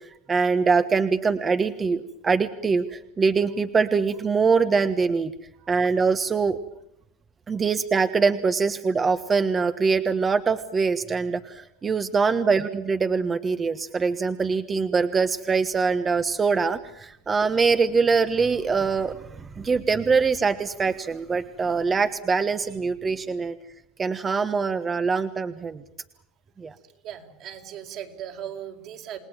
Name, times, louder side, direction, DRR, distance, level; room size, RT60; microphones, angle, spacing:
voice 1, 0.3-5.3 5.7-6.6 7.5-23.6 24.0-25.8 26.6-26.7, right 5 dB, 25° right, 10 dB, 1.3 m, -23 dB
voice 2, 27.0-29.2, right 10 dB, 55° right, 3 dB, 4.7 m, -38 dB
29.0 x 19.0 x 8.9 m, 0.78 s
supercardioid pair, 115°, 0 cm